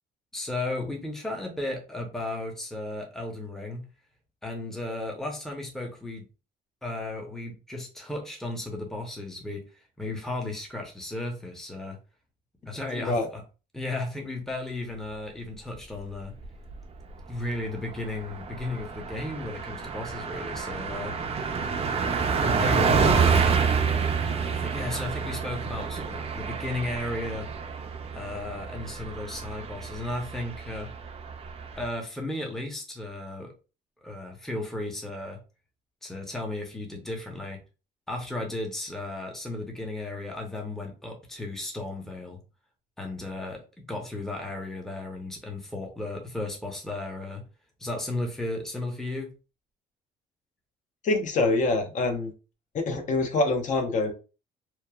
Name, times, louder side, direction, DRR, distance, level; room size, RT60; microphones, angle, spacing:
voice 1, 0.3-3.8 4.4-6.3 6.8-12.0 12.6-13.4 13.7-16.3 17.3-21.2 22.4-23.0 24.3-27.5 28.1-30.9 31.8-33.5 34.0-35.4 36.0-37.6 38.1-42.4 43.0-47.4 47.8-49.3, left 2 dB, ahead, 1 dB, 0.6 m, -35 dB
Car passing by, 16.2-16.8 17.2-17.3 17.6-31.9, right 5 dB, 35° right, 0.4 m, -28 dB
voice 2, 51.0-52.3 52.7-54.1, left 2 dB, 45° left, 4 dB, 0.7 m, -25 dB
2.9 x 2.1 x 2.2 m, 0.32 s
cardioid pair, 110°, 17 cm